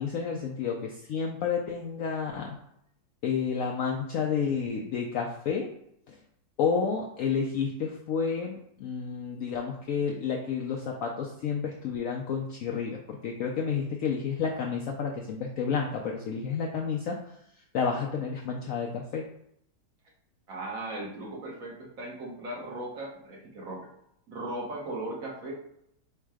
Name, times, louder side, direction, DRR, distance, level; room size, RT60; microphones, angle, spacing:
voice 1, 0.0-2.6 3.2-5.7 6.1-6.2 6.6-17.2 17.7-19.2, left 6 dB, 75° left, 1 dB, 0.7 m, -30 dB
voice 2, 20.5-23.9 24.3-25.5, right 2 dB, 55° right, -2 dB, 1.3 m, -37 dB
4.6 x 2.2 x 4.7 m, 0.74 s
omnidirectional pair, 1.9 m